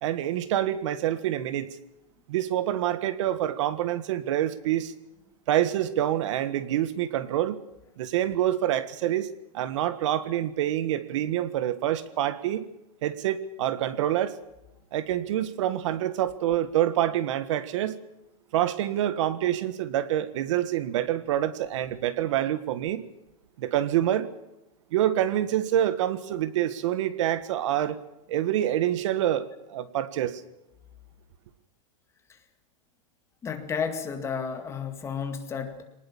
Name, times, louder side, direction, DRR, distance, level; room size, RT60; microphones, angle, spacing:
voice 1, 0.0-1.7 2.3-4.9 5.5-7.6 8.0-12.7 13.0-14.4 14.9-18.0 18.5-23.0 23.6-24.3 24.9-28.0 28.3-30.4, right 12 dB, 55° right, 1.6 m, -26 dB
voice 2, 33.4-35.8, left 6 dB, 15° left, 2.1 m, -32 dB
24.0 x 19.5 x 7.3 m
supercardioid pair, 165°, 18 cm